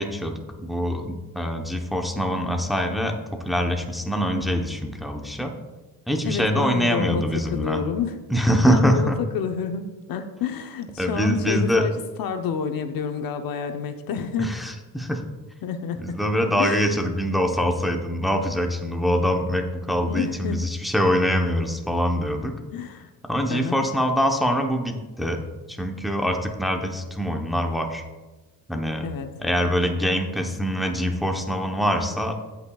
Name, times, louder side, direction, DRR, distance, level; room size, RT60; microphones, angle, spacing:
voice 1, 0.0-3.2 3.4-5.5 6.1-7.8 8.3-9.2 11.0-11.9 14.4-15.2 16.0-22.5 23.3-25.4 25.7-28.0 28.7-29.1 29.4-32.4, equal, ahead, 3 dB, 0.9 m, -24 dB
voice 2, 6.3-8.2 8.7-11.9 12.2-14.6 15.6-16.2 16.6-16.9 19.8-20.6 22.7-23.1 23.5-23.8 29.0-29.3, left 6 dB, 65° left, 7 dB, 0.8 m, -29 dB
16.5 x 5.8 x 2.3 m, 1.2 s
cardioid pair, 110°, 37 cm